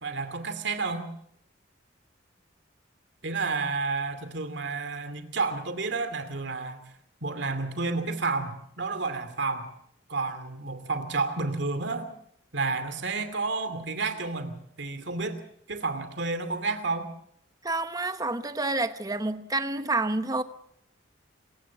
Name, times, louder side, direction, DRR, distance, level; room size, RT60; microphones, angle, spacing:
voice 1, 0.0-1.1 3.2-6.9 7.2-9.7 10.1-12.1 12.5-15.4 15.7-17.1, right 3 dB, 65° right, 9 dB, 2.5 m, -30 dB
voice 2, 17.6-20.4, right 2 dB, 20° right, 11 dB, 1.0 m, -28 dB
26.0 x 16.0 x 7.0 m, 0.69 s
head